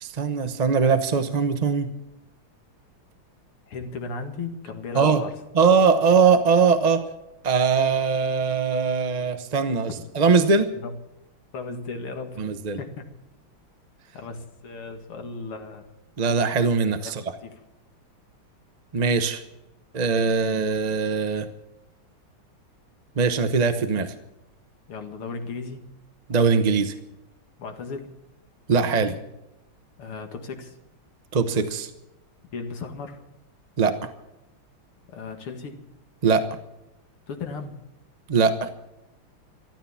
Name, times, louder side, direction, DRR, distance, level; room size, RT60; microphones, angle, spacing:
voice 1, 0.0-1.9 4.9-5.2 5.5-7.0 7.4-9.9 10.1-10.7 12.4-12.8 16.2-17.2 18.9-19.4 19.9-21.5 23.2-24.1 26.3-26.9 28.7-29.2 31.3-31.9 33.8-34.1 36.2-36.4 38.3-38.7, right 5 dB, 45° right, 8 dB, 0.5 m, -21 dB
voice 2, 3.7-5.3 9.9-10.0 10.7-10.9 11.5-12.4 12.8-13.0 14.1-15.9 17.0-17.1 17.4-17.6 24.9-25.9 27.6-28.1 30.0-30.7 32.5-33.2 35.1-35.8 37.3-37.8, left 4 dB, 85° left, 5 dB, 2.8 m, -35 dB
13.5 x 13.5 x 7.2 m, 0.88 s
omnidirectional pair, 2.3 m